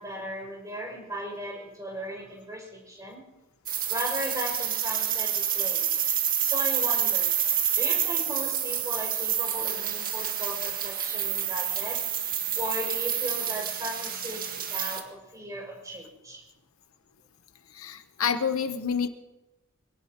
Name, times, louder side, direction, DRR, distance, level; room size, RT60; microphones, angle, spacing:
voice 1, 0.0-3.2 3.9-5.9 6.4-7.4 7.8-12.0 12.6-16.4, equal, 15° right, -1 dB, 5.9 m, -36 dB
sound 1, 3.7-15.0, right 9 dB, 45° right, 1.8 m, -28 dB
voice 2, 17.7-19.1, left 6 dB, 75° left, 9 dB, 1.0 m, -28 dB
25.0 x 17.5 x 3.0 m, 0.99 s
head